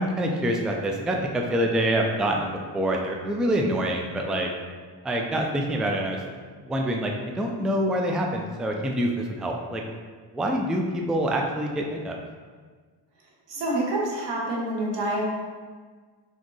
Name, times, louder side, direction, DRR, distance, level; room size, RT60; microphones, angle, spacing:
voice 1, 0.0-4.5 5.0-6.2 6.6-9.8 10.3-12.2, right 1 dB, ahead, 1 dB, 0.3 m, -26 dB
voice 2, 13.5-15.2, right 1 dB, 85° right, -3 dB, 1.2 m, -27 dB
4.2 x 4.0 x 3.1 m, 1.5 s
cardioid pair, 115°, 42 cm